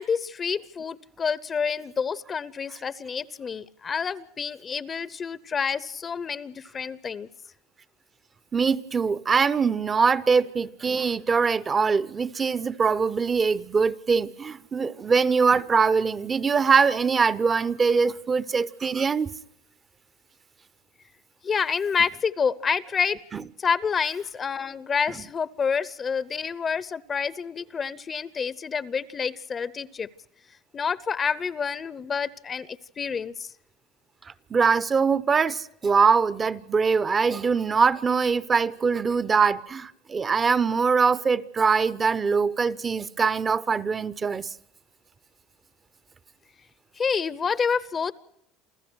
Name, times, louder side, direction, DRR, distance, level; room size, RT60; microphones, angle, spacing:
voice 1, 0.0-7.3 21.4-23.2 23.6-30.1 30.7-33.5 47.0-48.1, left 6 dB, 25° left, 0.7 m, -28 dB
voice 2, 8.5-19.3 23.3-23.4 34.5-44.5, right 5 dB, 25° right, 0.7 m, -23 dB
28.5 x 14.5 x 6.2 m
supercardioid pair, 125°, 0 cm